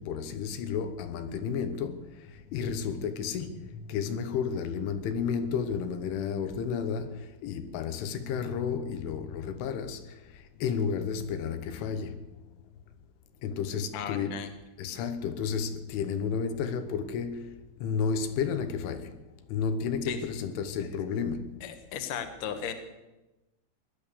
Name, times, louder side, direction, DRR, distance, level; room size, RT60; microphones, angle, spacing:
voice 1, 0.0-2.1 2.5-10.0 10.6-12.2 13.4-14.4 14.8-17.5 17.8-19.1 19.5-21.5, left 6 dB, 85° left, 3.5 m, -32 dB
voice 2, 13.9-14.5 20.0-20.2 20.8-20.9 21.6-22.7, left 8 dB, 65° left, 2.1 m, -36 dB
19.0 x 11.0 x 6.8 m
omnidirectional pair, 5.5 m